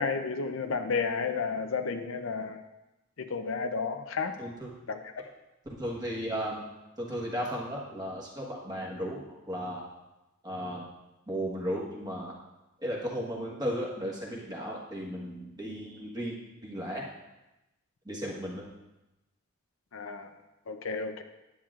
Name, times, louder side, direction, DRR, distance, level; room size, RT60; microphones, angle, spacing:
voice 1, 0.0-2.6 3.2-4.3 4.9-5.0 19.9-20.3 20.7-21.2, left 5 dB, 70° left, 7 dB, 0.6 m, -32 dB
voice 2, 4.4-4.7 5.8-6.6 7.0-9.2 9.5-9.8 10.4-10.9 11.3-12.3 12.8-16.4 16.6-17.0 18.0-18.6, equal, 20° right, -3 dB, 1.4 m, -35 dB
10.0 x 8.8 x 2.5 m, 0.97 s
head